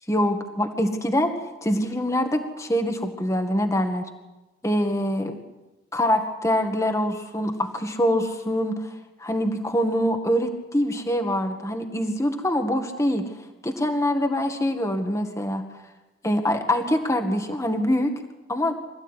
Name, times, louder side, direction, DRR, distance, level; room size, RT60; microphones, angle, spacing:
voice 1, 0.1-1.3 1.6-4.0 4.6-5.4 5.9-8.9 9.2-13.2 13.6-15.6 16.2-18.1 18.5-18.8, equal, 15° left, 5 dB, 1.9 m, -24 dB
25.5 x 15.5 x 9.9 m, 1.1 s
head